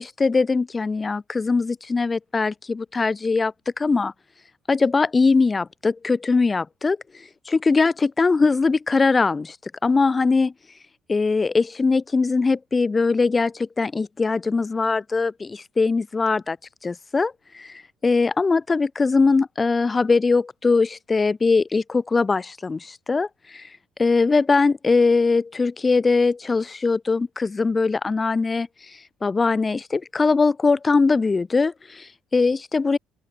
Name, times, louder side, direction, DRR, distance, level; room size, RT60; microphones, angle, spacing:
voice 1, 0.0-4.1 4.7-9.6 9.8-10.5 11.1-16.6 16.8-23.7 24.0-28.7 29.2-33.0, left 4 dB, 20° left, 5.2 m, -21 dB
open air
cardioid pair, 110°, 0 cm